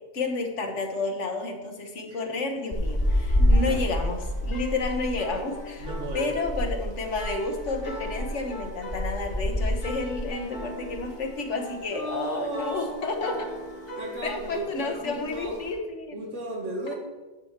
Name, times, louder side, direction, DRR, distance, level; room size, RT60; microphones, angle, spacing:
voice 1, 0.1-5.9 6.1-13.5 14.2-16.2, left 3 dB, 75° left, 3 dB, 1.6 m, -31 dB
sound 1, 2.7-11.2 11.5-11.7 12.1-12.9 13.3-13.6 13.9-14.0 14.2-14.6 15.2-15.7, equal, 20° left, 2.3 m, -28 dB
sound 2, 3.0-14.3, equal, 50° left, 1.7 m, -41 dB
voice 2, 3.4-4.1 5.8-6.4 11.9-13.1 14.0-15.6 16.1-16.9, right 2 dB, 85° right, -2 dB, 2.3 m, -35 dB
10.0 x 7.4 x 4.4 m, 1.2 s
omnidirectional pair, 1.2 m